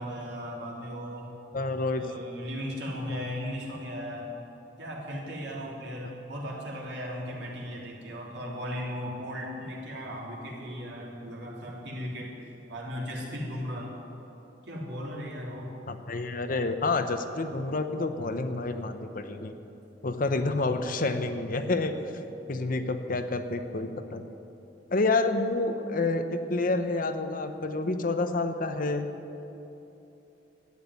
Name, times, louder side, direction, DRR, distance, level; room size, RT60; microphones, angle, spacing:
voice 1, 0.0-1.4 1.9-4.3 4.8-12.3 12.7-13.9 14.7-15.7, equal, 70° right, -3 dB, 3.1 m, -37 dB
voice 2, 1.5-2.0 3.1-3.3 15.9-19.5 20.0-21.9 22.5-24.3 24.9-29.1, left 3 dB, 50° left, 8 dB, 0.8 m, -29 dB
12.5 x 9.0 x 9.5 m, 3.0 s
head